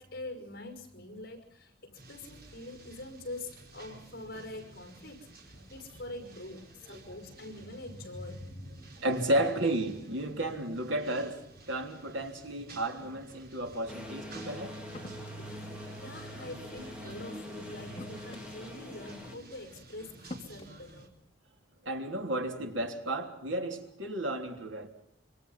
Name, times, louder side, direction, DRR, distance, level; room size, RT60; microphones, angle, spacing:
voice 1, 0.0-9.0 10.4-10.5 16.0-21.1, left 2 dB, 50° left, 5.5 m, -44 dB
sound 1, 1.9-21.1, right 2 dB, 50° right, 4.1 m, -53 dB
voice 2, 9.0-14.7 21.8-24.9, right 1 dB, 80° right, 3.4 m, -33 dB
sound 2, 13.9-19.4, equal, 5° right, 4.3 m, -43 dB
sound 3, 14.9-15.6 17.0-17.2 17.9-18.6 19.7-19.8 20.3-20.7, left 1 dB, 30° left, 3.4 m, -45 dB
26.5 x 25.0 x 5.6 m
head